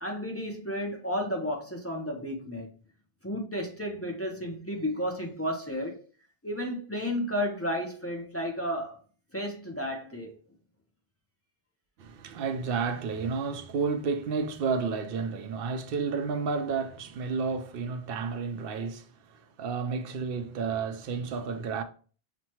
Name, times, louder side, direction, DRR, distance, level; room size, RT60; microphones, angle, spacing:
voice 1, 0.0-2.7 3.2-6.0 6.4-9.0 9.3-10.4, equal, 20° left, 0.5 m, -32 dB
voice 2, 12.0-21.8, right 5 dB, 70° right, 0.7 m, -31 dB
6.0 x 2.2 x 2.9 m
omnidirectional pair, 1.0 m